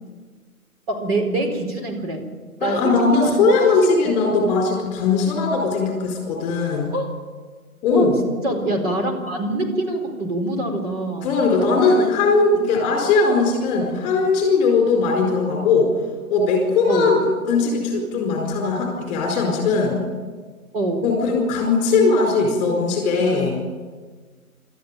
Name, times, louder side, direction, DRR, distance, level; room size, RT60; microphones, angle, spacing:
voice 1, 0.9-2.2 2.6-3.9 6.9-7.1 7.9-11.4 16.9-17.2 20.7-21.1, right 2 dB, 40° right, 3 dB, 4.5 m, -25 dB
voice 2, 2.6-6.9 7.8-8.2 11.2-15.9 16.3-20.0 21.0-23.6, left 4 dB, 15° left, 1 dB, 4.6 m, -19 dB
27.0 x 13.5 x 9.0 m, 1.5 s
hypercardioid pair, 155°, 44 cm